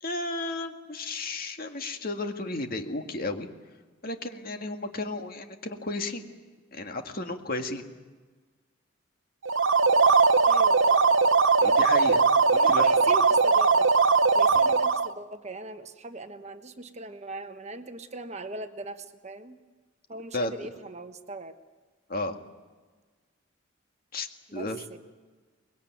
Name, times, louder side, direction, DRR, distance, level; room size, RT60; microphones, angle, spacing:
voice 1, 0.0-3.5 4.0-6.2 6.7-7.8 11.6-12.2 12.7-12.8 20.3-20.7 22.1-22.4 24.1-24.8, left 2 dB, 45° left, 5 dB, 2.0 m, -33 dB
sound 1, 9.4-15.1, right 4 dB, 65° right, 0.8 m, -20 dB
voice 2, 10.5-11.1 12.5-13.9 14.3-19.6 20.1-21.5 24.5-25.0, right 2 dB, 35° right, 8 dB, 1.2 m, -39 dB
24.5 x 21.0 x 9.4 m, 1.3 s
head